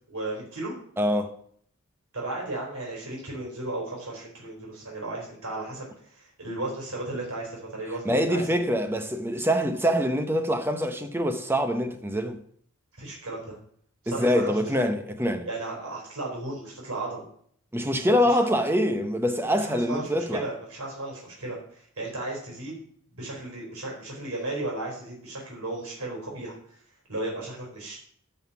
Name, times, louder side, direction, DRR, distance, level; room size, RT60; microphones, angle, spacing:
voice 1, 0.1-0.7 2.1-8.8 12.9-13.6 14.0-14.6 15.4-17.2 18.2-18.4 19.6-22.8 23.1-26.8 27.1-28.0, right 2 dB, 80° right, 4.3 m, -35 dB
voice 2, 1.0-1.3 8.0-12.4 14.1-15.5 17.7-20.4, equal, 10° right, 0.8 m, -25 dB
11.5 x 5.6 x 5.9 m
head